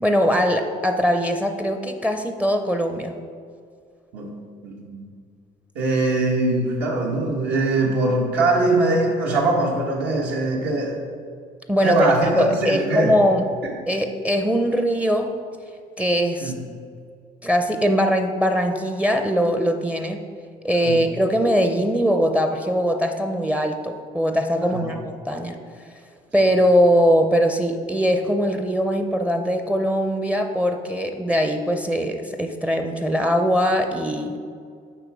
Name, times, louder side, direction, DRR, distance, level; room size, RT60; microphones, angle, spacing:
voice 1, 0.0-3.1 11.7-12.1 12.4-13.5 13.9-15.3 16.0-16.5 17.4-20.2 20.6-25.6 26.3-34.4, equal, 5° right, 5 dB, 0.5 m, -21 dB
voice 2, 4.6-5.0 5.7-11.0 11.8-13.1 16.4-16.6 20.8-21.0 24.7-24.9, right 2 dB, 80° right, -2 dB, 1.2 m, -22 dB
7.7 x 4.8 x 4.7 m, 2.2 s
cardioid pair, 110°, 17 cm